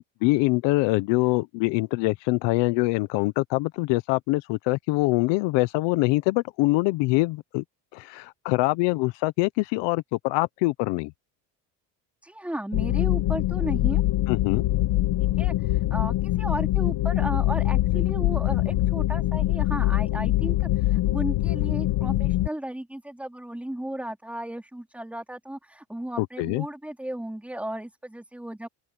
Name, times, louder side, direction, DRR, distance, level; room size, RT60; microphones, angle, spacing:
voice 1, 0.0-7.6 7.9-11.1 14.3-14.7 26.2-26.6, left 22 dB, 80° left, 0.8 m, -24 dB
voice 2, 12.2-14.0 15.2-28.7, right 1 dB, 5° right, 4.3 m, -35 dB
sound 1, 12.7-22.5, left 16 dB, 60° left, 1.4 m, -24 dB
open air
cardioid pair, 160°, 43 cm